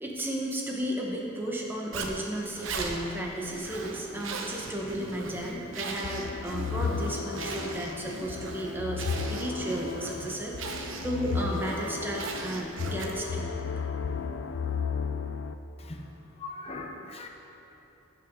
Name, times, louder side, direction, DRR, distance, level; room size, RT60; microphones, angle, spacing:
voice 1, 0.0-13.5, right 1 dB, 10° right, -2 dB, 1.1 m, -34 dB
Zipper (clothing), 1.9-13.4, right 3 dB, 85° right, 0.8 m, -39 dB
sound 1, 6.0-15.5, left 5 dB, 65° left, 0.4 m, -34 dB
voice 2, 16.4-17.3, left 3 dB, 30° left, 2 dB, 0.8 m, -39 dB
15.0 x 6.0 x 3.8 m, 3.0 s
head